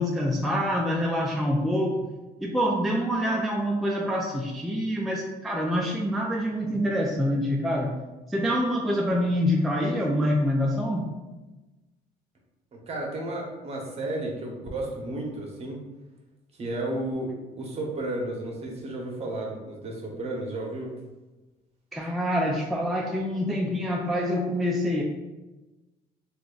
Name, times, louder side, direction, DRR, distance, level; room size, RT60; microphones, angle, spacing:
voice 1, 0.0-2.0 2.4-7.9 8.3-11.1 21.9-25.0, equal, ahead, -2 dB, 0.3 m, -26 dB
voice 2, 12.9-15.8 16.6-20.9, right 1 dB, 40° right, -1 dB, 0.9 m, -33 dB
2.9 x 2.4 x 3.7 m, 1.1 s
cardioid pair, 110°, 17 cm